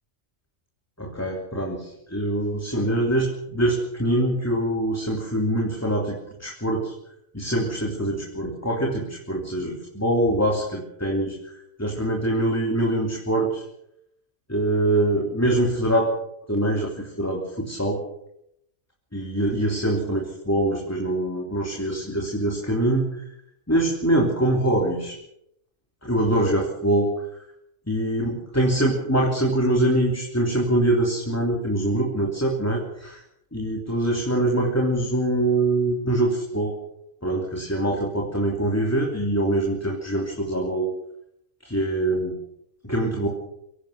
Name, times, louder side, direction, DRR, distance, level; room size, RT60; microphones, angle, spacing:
voice 1, 1.0-6.9 7.3-11.5 11.8-13.7 14.5-16.1 16.5-18.0 19.1-23.3 23.7-25.2 26.0-27.3 27.9-33.2 33.5-36.8 37.2-40.9 41.6-42.4 42.8-43.3, right 1 dB, 10° left, 0 dB, 3.1 m, -24 dB
24.0 x 17.0 x 6.6 m, 0.78 s
omnidirectional pair, 1.3 m